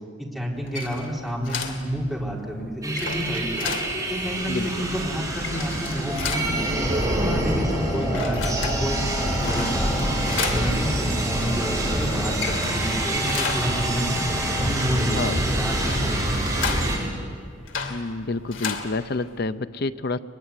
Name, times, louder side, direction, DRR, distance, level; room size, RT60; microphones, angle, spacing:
voice 1, 0.2-3.7 4.1-6.9 7.2-9.0 9.5-10.1 10.4-14.2 14.6-17.0, equal, ahead, -3 dB, 4.3 m, -30 dB
sound 1, 0.6-19.5, left 5 dB, 90° left, 2.7 m, -35 dB
sound 2, 2.8-17.0, right 1 dB, 20° right, 7.0 m, -26 dB
sound 3, 3.9-17.1, left 1 dB, 25° left, 3.0 m, -36 dB
voice 2, 17.9-20.2, left 3 dB, 55° left, 12 dB, 0.7 m, -28 dB
23.0 x 21.5 x 9.8 m, 2.2 s
head